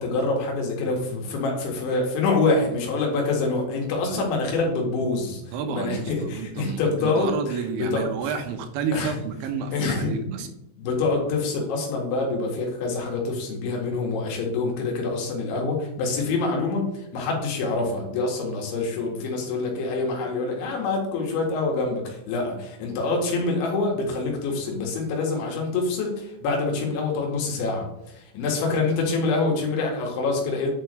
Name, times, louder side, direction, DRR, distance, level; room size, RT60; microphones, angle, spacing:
voice 1, 0.0-5.4 5.7-8.1 8.9-9.1 9.7-10.1 10.8-30.7, left 3 dB, 75° left, 0 dB, 4.2 m, -26 dB
voice 2, 4.0-4.3 5.5-10.5, right 6 dB, 85° right, 7 dB, 3.4 m, -30 dB
10.0 x 6.7 x 3.3 m, 0.86 s
omnidirectional pair, 5.4 m